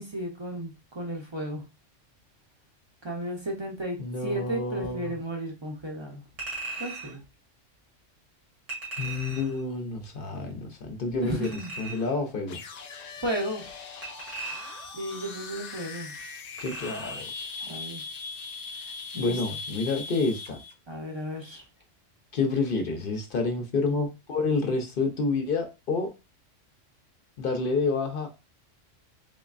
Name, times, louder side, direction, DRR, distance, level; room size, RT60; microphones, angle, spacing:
voice 1, 0.0-1.6 3.0-6.2 6.8-7.2 11.2-11.7 13.2-13.6 14.9-16.1 17.6-18.0 19.1-19.3 20.9-21.6, right 1 dB, 30° right, 0 dB, 0.5 m, -34 dB
voice 2, 4.0-5.2 9.0-11.5 11.8-12.6 16.6-17.3 19.2-20.6 22.3-26.1 27.4-28.3, left 3 dB, 55° left, 4 dB, 0.7 m, -28 dB
Chink clink, 6.4-7.2 8.7-9.6 11.4-12.2 14.0-15.0 16.6-17.2 17.6-17.7, right 3 dB, 70° right, 1.5 m, -38 dB
sound 1, 12.5-20.7, left 4 dB, 85° left, 0.3 m, -40 dB
3.8 x 3.0 x 2.4 m, 0.29 s
omnidirectional pair, 1.3 m